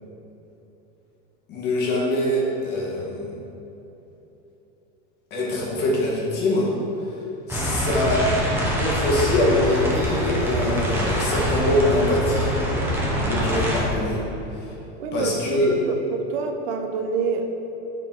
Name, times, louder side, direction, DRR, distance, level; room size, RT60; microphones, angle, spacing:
voice 1, 1.5-3.4 5.3-6.7 7.5-8.2 8.7-12.5 12.9-14.2 15.1-15.7, left 1 dB, 30° left, -4 dB, 1.3 m, -23 dB
sound 1, 7.5-13.8, equal, 5° right, 0.6 m, -24 dB
voice 2, 15.0-17.5, right 5 dB, 55° right, 5 dB, 0.6 m, -27 dB
7.9 x 4.5 x 3.6 m, 3.0 s
supercardioid pair, 160°, 35 cm